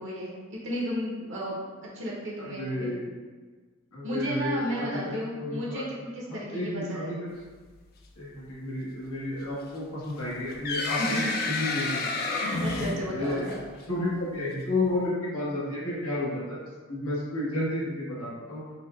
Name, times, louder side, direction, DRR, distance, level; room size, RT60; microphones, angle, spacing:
voice 1, 0.0-2.9 4.0-7.1 11.0-11.3 12.3-13.6, equal, 60° right, -5 dB, 0.7 m, -33 dB
voice 2, 2.4-3.1 3.9-5.0 5.4-5.8 6.3-7.2 8.2-12.0 13.1-13.4 13.9-16.6 16.9-18.6, left 1 dB, 85° left, -6 dB, 1.1 m, -31 dB
sound 1, 10.2-13.8, left 3 dB, 45° left, 0.4 m, -30 dB
5.4 x 2.2 x 2.3 m, 1.4 s
head